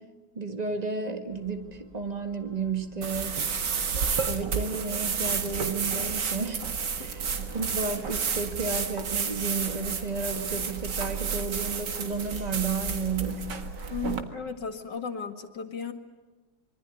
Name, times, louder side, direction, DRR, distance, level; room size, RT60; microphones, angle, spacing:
voice 1, 0.4-3.5 4.3-6.7 6.9-13.5, right 4 dB, 25° right, 6 dB, 1.9 m, -32 dB
sound 1, 1.3-12.3, equal, 55° right, 8.6 m, -53 dB
sound 2, 3.0-14.2, right 6 dB, 90° right, 2.4 m, -31 dB
voice 2, 13.9-15.9, left 6 dB, 90° left, 6 dB, 2.6 m, -35 dB
25.5 x 23.5 x 9.9 m, 1.2 s
omnidirectional pair, 1.8 m